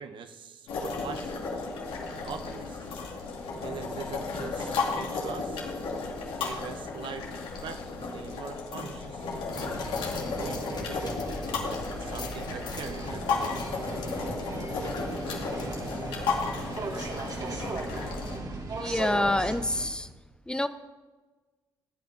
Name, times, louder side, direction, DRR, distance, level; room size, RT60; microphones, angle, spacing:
voice 1, 0.0-1.4 2.0-2.9 3.6-5.7 6.4-7.3 7.6-11.1 11.8-13.5, right 6 dB, 65° right, 8 dB, 1.0 m, -43 dB
sound 1, 0.7-18.4, left 4 dB, 80° left, 2.4 m, -34 dB
sound 2, 9.5-16.4 16.8-16.9, left 4 dB, 50° left, 1.7 m, -46 dB
sound 3, 9.7-19.9, right 3 dB, 45° right, 1.8 m, -37 dB
voice 2, 18.8-20.1 20.5-20.7, left 1 dB, 10° left, 10 dB, 0.7 m, -27 dB
14.0 x 8.6 x 5.3 m, 1.3 s
cardioid pair, 75°, 9 cm